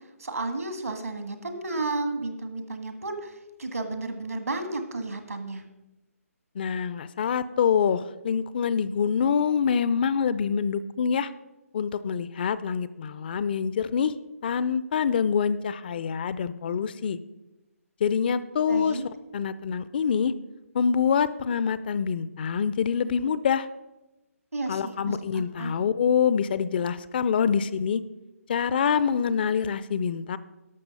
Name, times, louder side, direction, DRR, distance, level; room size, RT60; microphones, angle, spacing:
voice 1, 0.2-5.6 18.7-19.1 24.5-25.8, right 2 dB, 75° right, 7 dB, 1.8 m, -32 dB
voice 2, 6.6-11.3 11.7-14.1 14.4-17.2 18.0-19.0 19.3-20.3 20.7-23.7 24.7-28.0 28.5-30.4, left 7 dB, 40° left, 15 dB, 0.4 m, -25 dB
12.0 x 6.8 x 5.4 m, 1.0 s
figure-of-eight pair, 140°, 8 cm